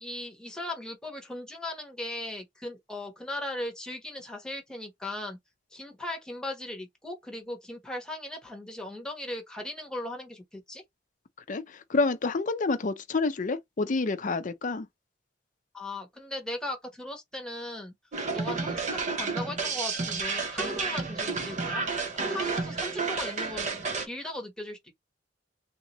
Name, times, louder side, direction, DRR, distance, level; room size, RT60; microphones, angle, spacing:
voice 1, 0.0-5.4 5.7-10.8 15.7-17.9 18.3-21.8 22.2-24.9, left 1 dB, 5° left, 1.1 m, -38 dB
voice 2, 11.5-14.9, left 3 dB, 45° left, 0.5 m, -28 dB
sound 1, 18.1-24.0, right 4 dB, 40° right, 0.7 m, -31 dB
3.6 x 2.7 x 3.0 m
head